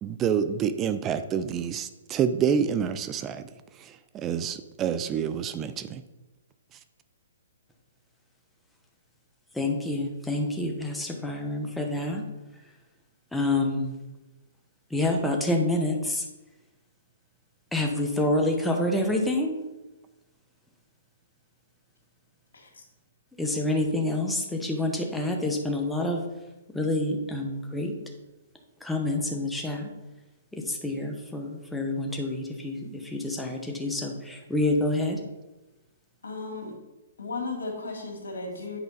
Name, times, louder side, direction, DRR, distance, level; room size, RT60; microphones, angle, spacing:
voice 1, 0.0-3.4 3.8-6.0, right 7 dB, 20° right, 11 dB, 0.4 m, -28 dB
voice 2, 9.5-12.2 13.3-14.0 14.9-16.3 17.7-19.6 23.4-26.2 26.7-28.0 28.8-29.9 30.5-35.2, left 1 dB, 5° left, 1 dB, 1.1 m, -27 dB
voice 3, 36.2-36.8 37.2-38.8, left 3 dB, 80° left, 2 dB, 2.0 m, -35 dB
8.7 x 5.0 x 4.1 m, 1.0 s
hypercardioid pair, 140°, 0 cm